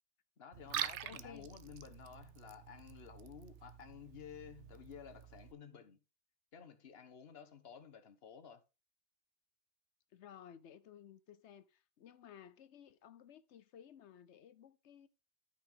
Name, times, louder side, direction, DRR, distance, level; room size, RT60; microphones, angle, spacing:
voice 1, 0.4-6.0 6.5-8.6, left 7 dB, 60° left, 1.4 m, -53 dB
Liquid, 0.5-5.5, right 10 dB, 85° right, 1.0 m, -46 dB
voice 2, 1.0-1.5 10.1-15.1, left 9 dB, 85° left, 1.1 m, -56 dB
12.5 x 5.5 x 3.6 m
omnidirectional pair, 1.2 m